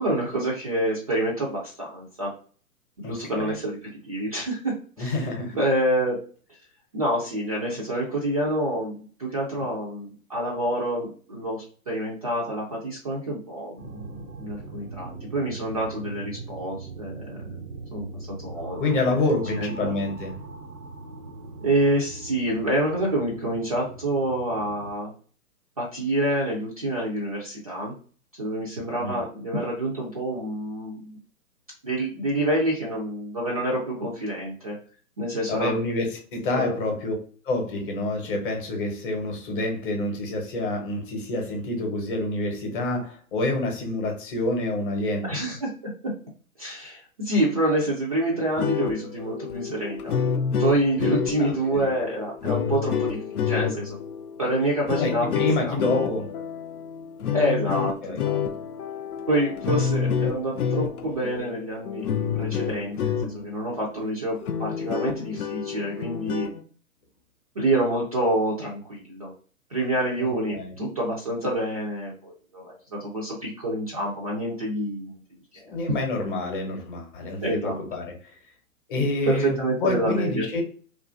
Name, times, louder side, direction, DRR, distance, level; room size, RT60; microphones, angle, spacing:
voice 1, 0.0-2.3 3.0-3.8 4.0-5.2 5.5-6.2 6.9-17.6 17.9-19.2 19.6-19.9 21.6-25.1 25.8-27.9 28.4-31.2 31.8-34.8 35.2-35.8 36.5-36.7 45.2-45.9 46.6-50.2 50.6-54.0 54.4-56.2 57.3-58.4 59.3-62.0 62.3-66.5 67.6-69.3 69.7-75.2 75.6-75.7 77.4-77.8 79.2-80.5, right 1 dB, 30° right, -4 dB, 0.3 m, -27 dB
voice 2, 3.0-3.5 5.0-5.6 18.8-20.4 29.0-29.2 35.5-37.1 37.4-45.3 51.4-51.9 55.0-56.3 57.7-58.2 70.2-70.8 75.7-78.1 78.9-80.6, left 2 dB, 35° left, 2 dB, 0.8 m, -27 dB
sound 1, 13.8-24.9, right 3 dB, 80° right, 0.8 m, -40 dB
sound 2, 48.4-63.6 64.0-64.1 64.4-66.6, left 7 dB, 75° left, 0.6 m, -29 dB
2.6 x 2.4 x 2.4 m, 0.42 s
hypercardioid pair, 130°, 44 cm